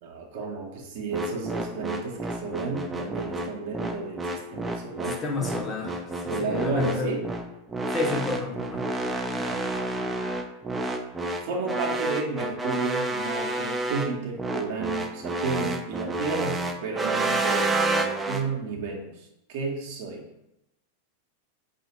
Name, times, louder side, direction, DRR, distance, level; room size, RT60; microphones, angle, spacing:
voice 1, 0.0-5.2 6.3-7.2 9.3-9.8 11.4-20.2, right 4 dB, 50° right, 1 dB, 0.8 m, -32 dB
sound 1, 1.1-18.4, right 2 dB, 10° right, 0.4 m, -29 dB
voice 2, 5.2-7.1 7.9-8.8, left 3 dB, 20° left, 0 dB, 0.7 m, -30 dB
4.7 x 2.5 x 3.0 m, 0.87 s
figure-of-eight pair, 90°, 0 cm